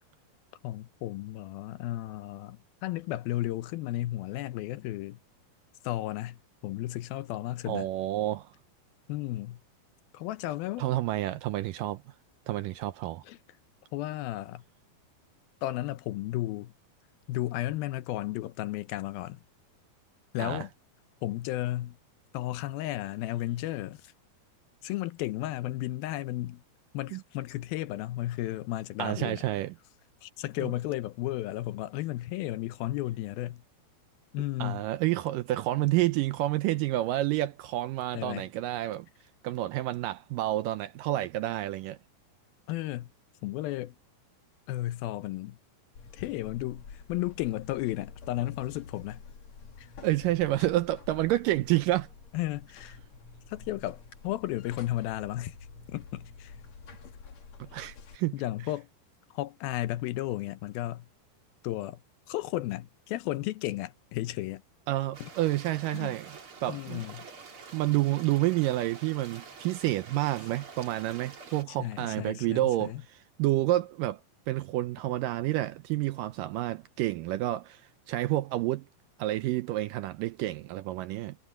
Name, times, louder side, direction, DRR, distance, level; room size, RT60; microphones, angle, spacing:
voice 1, 0.6-5.2 5.8-7.9 9.1-9.6 10.1-10.9 13.3-13.4 13.9-14.6 15.6-16.7 17.3-19.4 20.3-20.7 21.2-22.0 22.3-24.1 24.8-26.6 26.9-29.4 30.2-33.6 34.3-34.8 38.1-38.5 42.7-43.1 43.4-44.0 44.7-45.6 46.1-49.2 49.8-49.9 52.3-53.0 53.5-55.6 55.9-56.5 58.3-58.9 59.3-61.1 61.6-62.0 62.3-64.6 65.2-65.3 65.9-66.2 66.7-67.3 71.8-73.0, left 15 dB, 80° left, 2.5 m, -34 dB
voice 2, 7.7-8.5 10.8-12.0 12.5-13.2 20.4-20.7 27.1-27.2 29.0-29.7 30.6-30.7 34.6-39.1 39.4-42.0 50.0-52.1 57.6-58.3 64.9-67.0 67.7-74.2 74.5-77.8 78.1-78.9 79.2-81.4, right 16 dB, 80° right, 2.0 m, -29 dB
Buzz, 46.0-58.2, left 5 dB, 50° left, 3.4 m, -49 dB
sound 1, 65.1-71.6, right 5 dB, 35° right, 3.2 m, -48 dB
omnidirectional pair, 4.4 m